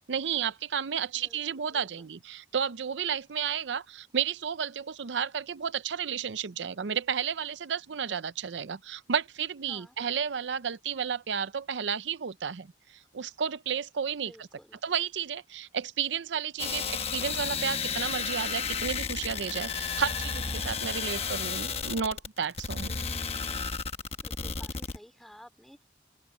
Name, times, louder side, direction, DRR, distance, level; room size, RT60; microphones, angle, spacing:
voice 1, 0.1-14.5 14.8-22.9, right 7 dB, 85° right, 0.6 m, -32 dB
voice 2, 1.7-2.1 9.7-10.0 14.2-14.8 22.8-23.2 24.2-25.8, equal, ahead, 2.6 m, -53 dB
sound 1, 16.6-25.0, left 5 dB, 35° left, 1.1 m, -33 dB
open air
head